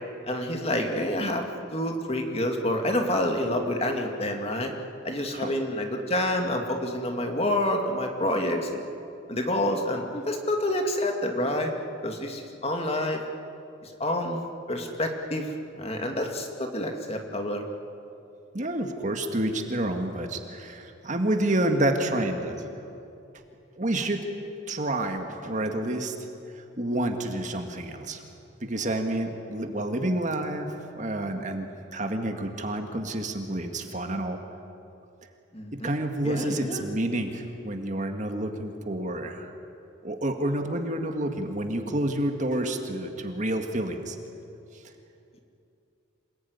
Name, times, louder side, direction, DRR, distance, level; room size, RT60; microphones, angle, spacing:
voice 1, 0.3-4.7 5.0-8.8 9.3-11.7 12.0-13.2 13.8-17.6 35.5-36.0 36.2-36.9, left 1 dB, 30° left, 3 dB, 2.3 m, -28 dB
voice 2, 18.5-22.6 23.8-24.3 24.7-26.1 26.5-28.2 28.6-34.4 35.7-39.5 40.0-44.2, right 1 dB, 35° right, 5 dB, 2.0 m, -29 dB
27.5 x 19.5 x 9.6 m, 2.7 s
head